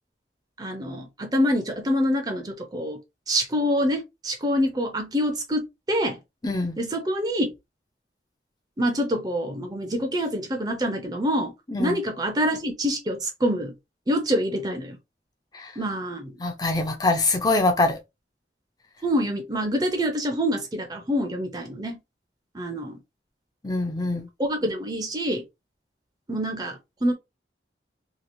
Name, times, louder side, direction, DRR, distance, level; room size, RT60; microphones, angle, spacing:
voice 1, 0.6-3.0 3.3-6.2 6.8-7.5 8.8-11.5 11.8-13.7 14.1-15.0 15.8-16.3 19.0-22.0 22.5-23.0 24.4-25.4 26.3-27.1, equal, 20° right, 0.5 m, -26 dB
voice 2, 6.4-6.8 11.7-12.0 15.5-15.7 16.4-18.0 23.6-24.3, left 2 dB, 20° left, 0.5 m, -24 dB
2.9 x 2.4 x 2.6 m
head